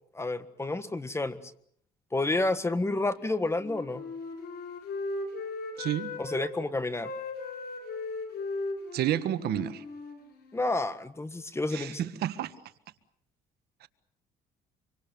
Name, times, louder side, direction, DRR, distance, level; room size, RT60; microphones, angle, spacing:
voice 1, 0.1-1.4 2.1-4.0 6.2-7.1 10.5-12.1, left 2 dB, 15° left, 13 dB, 1.6 m, -30 dB
Wind instrument woodwind instrument, 3.5-6.5 7.0-10.8, left 3 dB, 70° left, 7.4 m, -37 dB
voice 2, 5.8-6.1 8.9-9.8 11.7-12.5 13.8-13.9, right 12 dB, 70° right, 12 dB, 1.6 m, -30 dB
26.5 x 24.5 x 7.1 m, 0.64 s
cardioid pair, 110°, 17 cm